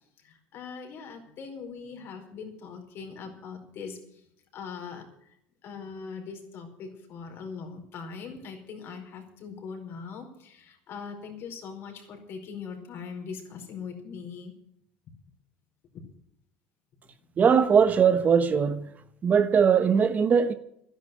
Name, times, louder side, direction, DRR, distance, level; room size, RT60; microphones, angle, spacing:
voice 1, 0.2-4.3 4.5-5.4 5.6-14.5 15.9-16.0, left 5 dB, 55° left, 4.8 m, -41 dB
voice 2, 17.4-18.8 19.2-20.5, right 6 dB, 35° right, 1.1 m, -20 dB
12.5 x 10.5 x 9.1 m
supercardioid pair, 105°, 5 cm